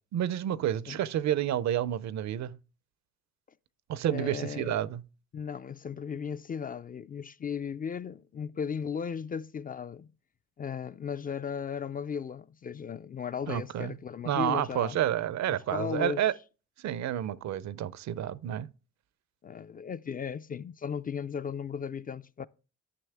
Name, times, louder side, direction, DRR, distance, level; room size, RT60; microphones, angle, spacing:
voice 1, 0.1-2.6 3.9-5.0 13.5-13.9 14.2-16.3 16.8-18.7, right 11 dB, 65° right, 0.6 m, -30 dB
voice 2, 4.1-4.8 5.3-10.1 10.6-15.0 15.5-16.2 19.4-22.5, left 7 dB, 30° left, 0.4 m, -36 dB
11.5 x 6.3 x 3.5 m
cardioid pair, 90°, 30 cm